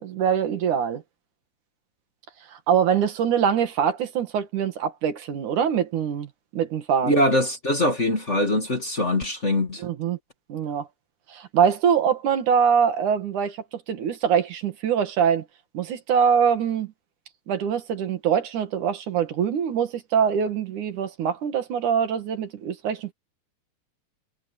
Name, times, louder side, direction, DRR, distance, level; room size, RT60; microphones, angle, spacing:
voice 1, 0.0-1.0 2.7-7.2 9.8-10.2 10.5-10.9 11.3-15.4 15.7-16.9 17.5-23.1, right 7 dB, 65° right, 3.1 m, -23 dB
voice 2, 7.0-9.8, left 1 dB, 25° left, 1.9 m, -22 dB
omnidirectional pair, 4.0 m